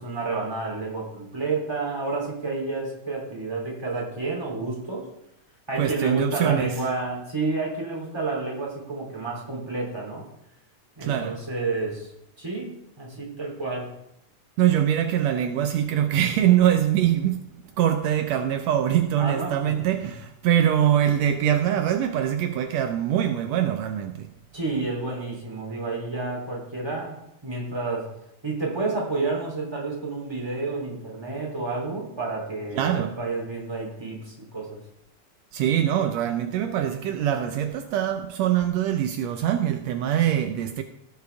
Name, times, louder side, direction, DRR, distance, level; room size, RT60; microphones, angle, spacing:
voice 1, 0.0-5.1 5.7-10.2 11.0-12.1 12.4-12.7 13.0-13.9 19.2-19.7 24.5-27.2 27.4-28.1 28.4-34.8, right 3 dB, 10° right, 2.8 m, -30 dB
voice 2, 5.8-6.7 11.0-11.4 14.6-17.4 17.8-24.3 32.7-33.2 35.5-40.8, right 10 dB, 85° right, 1.5 m, -23 dB
17.0 x 7.0 x 3.4 m
omnidirectional pair, 3.7 m